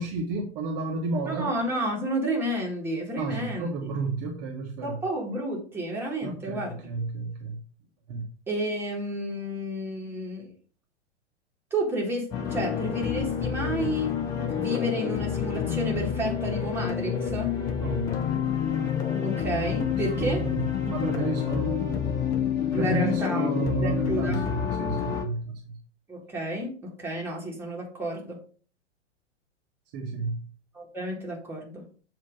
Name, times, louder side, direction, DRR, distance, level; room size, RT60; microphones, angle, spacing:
voice 1, 0.0-1.5 3.2-5.0 6.2-7.6 8.1-8.2 17.8-18.1 20.1-20.6 20.9-22.1 22.7-25.8 29.9-30.4, right 3 dB, 35° right, 1.0 m, -31 dB
voice 2, 1.2-3.9 4.8-6.8 8.5-10.5 11.7-14.1 14.5-17.5 19.2-20.4 22.7-24.4 26.1-28.4 30.7-31.8, right 1 dB, 5° right, 1.6 m, -31 dB
sound 1, 12.3-25.2, left 8 dB, 10° left, 0.3 m, -28 dB
7.2 x 2.9 x 5.2 m
figure-of-eight pair, 105°, 34 cm